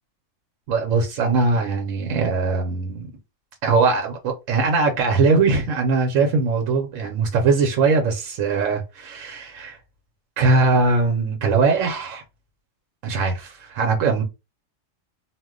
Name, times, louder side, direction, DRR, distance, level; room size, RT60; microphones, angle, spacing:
voice 1, 0.7-3.1 3.6-9.8 10.4-12.2 13.0-14.2, right 4 dB, 90° right, 1.0 m, -21 dB
2.4 x 2.1 x 3.6 m
omnidirectional pair, 1.3 m